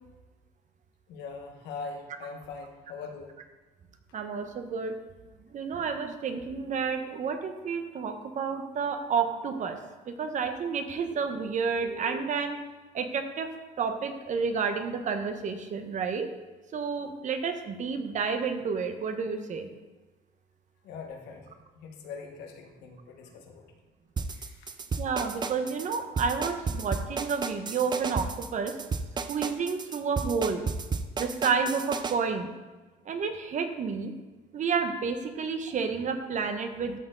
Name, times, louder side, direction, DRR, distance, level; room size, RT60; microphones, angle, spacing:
voice 1, 1.1-3.4 20.8-23.6 24.3-24.8, left 4 dB, 90° left, 3 dB, 1.3 m, -42 dB
voice 2, 4.1-4.9 5.5-9.8 10.1-12.6 12.9-13.5 13.8-16.3 16.7-19.7 25.0-28.8 29.3-30.6 31.2-32.5 33.1-34.1 34.5-37.0, right 5 dB, 45° right, 7 dB, 1.0 m, -30 dB
sound 1, 24.2-32.2, right 4 dB, 25° right, 0.5 m, -32 dB
13.0 x 4.4 x 3.8 m, 1.2 s
cardioid pair, 110°, 17 cm